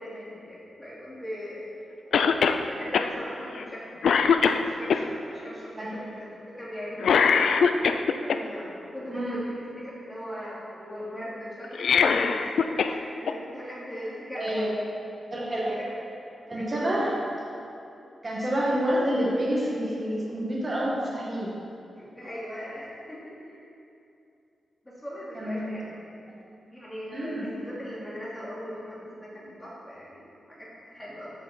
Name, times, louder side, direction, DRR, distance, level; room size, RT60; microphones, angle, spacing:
voice 1, 0.0-1.6 2.1-4.0 4.4-6.3 6.6-7.6 8.2-14.7 15.5-16.0 16.6-17.1 22.0-23.6 24.8-26.0 26.7-31.3, equal, 10° left, -8 dB, 2.7 m, -39 dB
Cough, 2.1-2.6 2.9-3.1 3.6-3.8 4.0-5.0 7.0-8.4 11.6-13.0 13.3-13.4 14.5-14.6, left 6 dB, 75° left, 0.4 m, -22 dB
voice 2, 14.3-14.7 15.3-15.7 16.5-17.1 18.2-21.5 25.3-25.7 26.3-26.4 27.1-27.5, equal, 25° right, -5 dB, 1.9 m, -28 dB
14.0 x 6.3 x 4.3 m, 2.7 s
wide cardioid pair, 155°, 0 cm